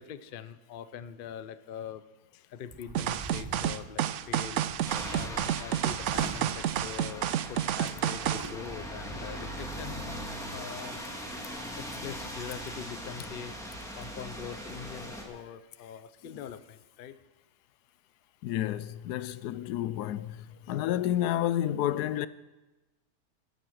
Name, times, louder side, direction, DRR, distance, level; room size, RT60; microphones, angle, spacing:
voice 1, 0.0-2.0 2.3-4.6 5.1-10.2 10.5-11.0 11.8-17.2, left 8 dB, 55° left, 0.6 m, -43 dB
sound 1, 2.7-7.5 7.9-10.3, right 2 dB, 15° right, 1.0 m, -45 dB
sound 2, 2.9-8.5, right 11 dB, 65° right, 0.7 m, -30 dB
sound 3, 4.9-15.2, equal, ahead, 2.0 m, -40 dB
voice 2, 18.4-22.3, left 12 dB, 85° left, 1.1 m, -30 dB
18.0 x 7.8 x 6.4 m
omnidirectional pair, 1.7 m